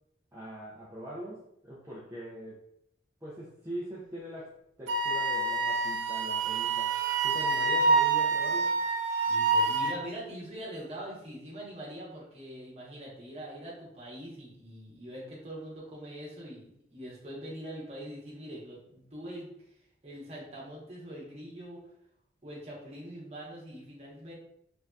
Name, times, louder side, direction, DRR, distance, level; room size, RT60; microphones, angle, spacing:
voice 1, 0.3-2.6 3.2-6.9 7.2-8.7, equal, 15° right, -8 dB, 0.5 m, -42 dB
Wind instrument woodwind instrument, 4.9-10.0, right 4 dB, 85° right, 0.3 m, -27 dB
voice 2, 9.3-19.5 20.0-21.8 22.4-24.3, equal, 35° right, -5 dB, 1.0 m, -43 dB
3.3 x 2.6 x 2.3 m, 0.73 s
head